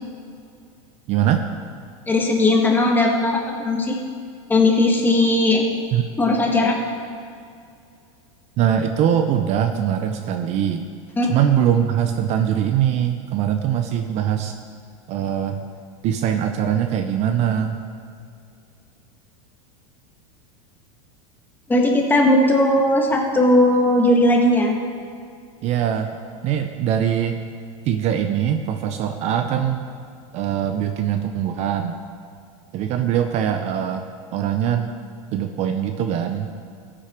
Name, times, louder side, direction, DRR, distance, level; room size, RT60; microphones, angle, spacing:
voice 1, 1.1-1.4 5.9-6.1 8.6-10.9 11.3-14.5 15.1-15.6 16.0-17.8 25.6-26.1 26.4-27.4 27.9-29.9 30.3-32.0 32.7-34.9 35.3-36.5, right 9 dB, 40° right, 7 dB, 0.7 m, -22 dB
voice 2, 2.1-4.0 4.5-5.6 6.2-6.8 11.2-11.3 21.7-24.8, left 1 dB, 10° left, 0 dB, 1.6 m, -17 dB
14.0 x 8.7 x 4.5 m, 2.4 s
supercardioid pair, 135°, 17 cm